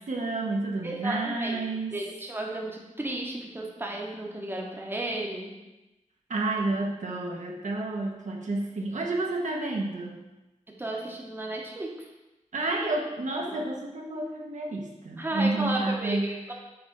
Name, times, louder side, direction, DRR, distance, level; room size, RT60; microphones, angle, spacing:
voice 1, 0.1-1.9 6.3-10.2 12.5-16.3, right 2 dB, 70° right, -1 dB, 0.9 m, -30 dB
voice 2, 0.8-5.6 10.8-12.1 13.5-13.6 15.2-16.5, right 1 dB, 15° right, -1 dB, 0.9 m, -34 dB
5.9 x 3.3 x 5.3 m, 1.0 s
wide cardioid pair, 115°, 13 cm